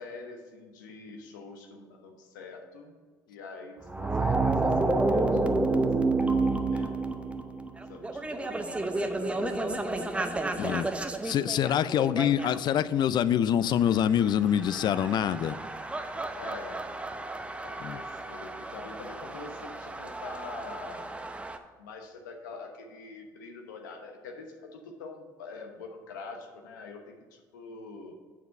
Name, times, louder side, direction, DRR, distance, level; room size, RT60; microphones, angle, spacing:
voice 1, 0.0-2.9 3.3-5.4 6.2-7.0 7.9-10.5 16.3-16.9 17.6-21.1 21.8-28.1, left 4 dB, 85° left, 3 dB, 1.0 m, -44 dB
sound 1, 3.9-12.7 14.2-21.6, right 3 dB, 10° right, 0.7 m, -30 dB
voice 2, 10.6-10.9 11.2-15.6 17.8-18.0, left 9 dB, 50° left, 16 dB, 0.4 m, -25 dB
7.0 x 6.0 x 5.3 m, 1.5 s
hypercardioid pair, 65°, 10 cm